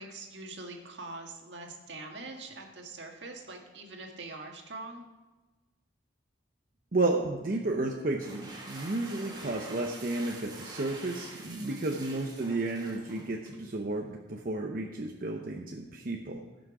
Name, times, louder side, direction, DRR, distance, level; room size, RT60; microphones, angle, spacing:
voice 1, 0.0-5.0 11.7-12.1, right 2 dB, 75° right, 2 dB, 1.7 m, -43 dB
voice 2, 6.9-16.4, right 2 dB, 50° right, 1 dB, 0.8 m, -32 dB
sound 1, 8.0-13.6, right 2 dB, 25° right, 1.7 m, -46 dB
16.0 x 6.2 x 4.8 m, 1.2 s
head